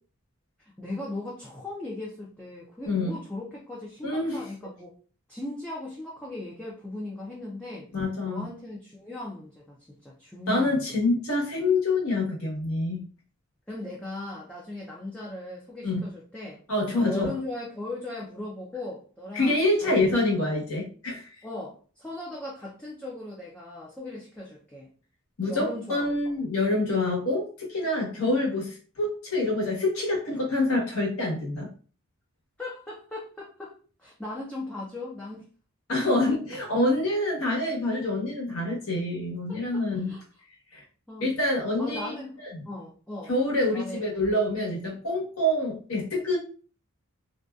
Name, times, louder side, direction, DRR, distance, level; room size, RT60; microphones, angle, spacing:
voice 1, 0.8-4.9 5.3-7.9 8.2-11.0 13.7-16.6 17.0-19.6 19.8-20.0 21.4-24.9 25.5-26.5 28.3-28.4 32.6-35.4 39.5-40.2 41.1-41.3 41.8-42.4 42.6-43.3 43.7-44.1, left 2 dB, 5° left, -5 dB, 0.4 m, -38 dB
voice 2, 4.0-4.4 7.9-8.4 10.5-13.0 15.8-16.0 16.7-17.3 19.3-21.3 25.4-31.7 35.9-40.1 40.7-40.8 41.2-42.1 43.3-46.4, left 2 dB, 85° left, -3 dB, 1.1 m, -26 dB
2.5 x 2.2 x 2.3 m, 0.39 s
head